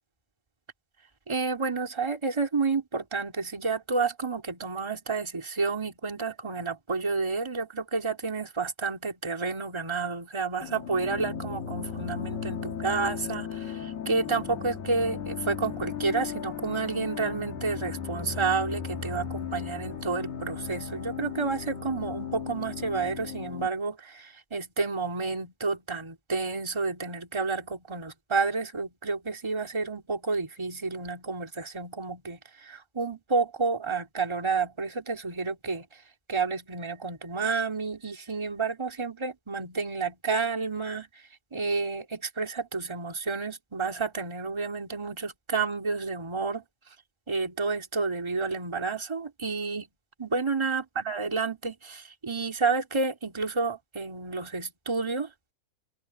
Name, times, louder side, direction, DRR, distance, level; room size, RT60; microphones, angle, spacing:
voice 1, 1.3-35.9 36.3-41.1 41.5-46.6 47.3-49.9 50.2-55.3, right 4 dB, 10° right, 1.9 m, -30 dB
sound 1, 10.6-23.7, left 7 dB, 85° left, 5.2 m, -36 dB
omnidirectional pair, 4.5 m